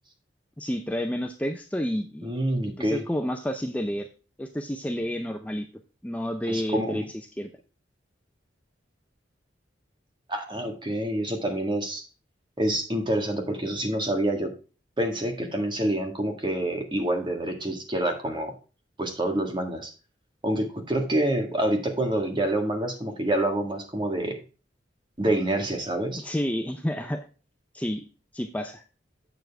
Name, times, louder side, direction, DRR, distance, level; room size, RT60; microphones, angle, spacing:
voice 1, 0.6-2.3 2.8-4.1 4.4-5.7 6.0-7.0 7.4-7.5 26.2-27.3 27.7-28.0 28.3-28.8, equal, 10° left, 5 dB, 0.5 m, -30 dB
voice 2, 2.2-3.0 6.5-7.0 10.3-12.0 12.6-14.5 15.0-18.5 19.0-19.9 20.4-24.4 25.2-26.2, right 1 dB, 25° right, 4 dB, 1.6 m, -27 dB
7.8 x 7.0 x 3.4 m, 0.34 s
head